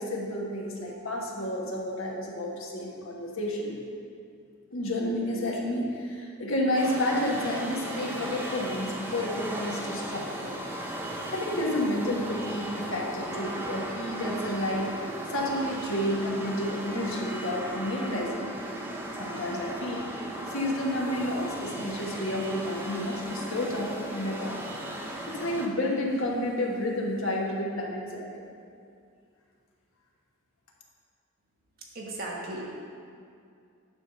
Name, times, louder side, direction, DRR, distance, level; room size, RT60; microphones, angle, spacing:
voice 1, 0.0-3.8 4.7-10.5 11.3-14.9 15.3-18.5 19.2-24.6 25.3-28.3, left 1 dB, 70° left, -2 dB, 1.3 m, -30 dB
sound 1, 6.7-25.7, right 1 dB, 10° right, 0.6 m, -36 dB
voice 2, 31.9-32.8, right 2 dB, 45° right, -3 dB, 1.3 m, -36 dB
9.5 x 3.6 x 6.4 m, 2.4 s
head